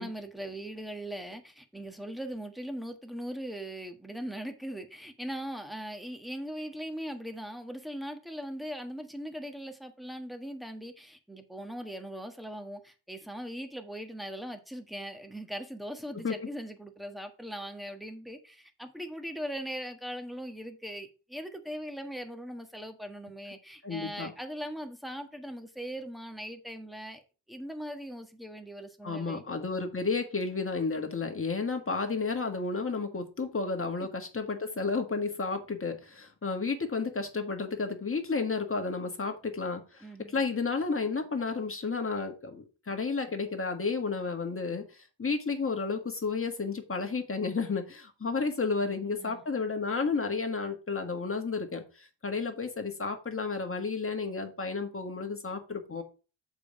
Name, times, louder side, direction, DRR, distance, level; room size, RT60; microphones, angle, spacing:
voice 1, 0.0-27.2 27.5-29.4 40.0-40.4 48.8-49.4, equal, ahead, 1.5 m, -40 dB
voice 2, 23.8-24.3 29.0-44.8 45.2-56.0, left 4 dB, 25° left, 1.7 m, -32 dB
6.8 x 5.3 x 5.3 m
cardioid pair, 75°, 47 cm